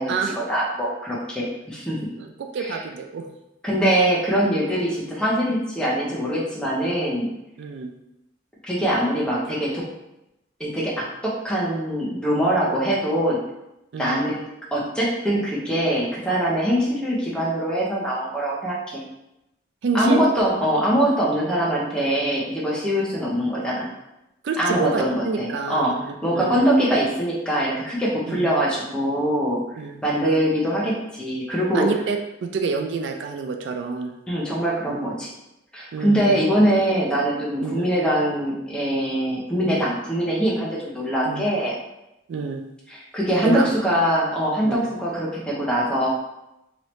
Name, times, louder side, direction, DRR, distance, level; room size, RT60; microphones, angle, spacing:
voice 1, 0.0-2.0 2.6-2.7 3.6-7.3 8.6-9.9 10.6-13.4 14.0-14.4 14.7-19.0 19.9-23.9 24.6-25.9 26.2-29.6 30.0-31.9 34.3-35.3 35.7-41.7 42.9-46.1, right 1 dB, 5° left, -5 dB, 0.7 m, -23 dB
voice 2, 2.2-3.3 7.6-7.9 13.9-14.2 19.8-20.2 24.4-26.6 28.3-28.5 29.8-30.0 31.7-34.1 35.9-36.4 37.6-37.9 39.6-39.8 41.3-41.5 42.3-42.6 43.4-43.7 44.6-44.8, right 4 dB, 75° right, 4 dB, 0.3 m, -28 dB
2.9 x 2.7 x 3.1 m, 0.91 s
head